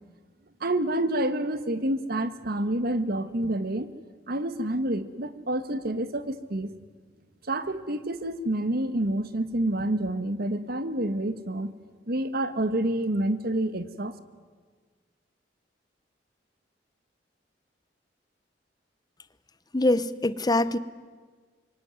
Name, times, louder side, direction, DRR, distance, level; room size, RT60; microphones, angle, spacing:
voice 1, 0.6-3.9 4.3-6.7 7.5-11.7 12.1-14.1, right 1 dB, 60° right, 12 dB, 1.5 m, -28 dB
voice 2, 19.7-20.8, left 2 dB, 20° left, 15 dB, 0.9 m, -23 dB
26.0 x 23.5 x 9.6 m, 1.5 s
head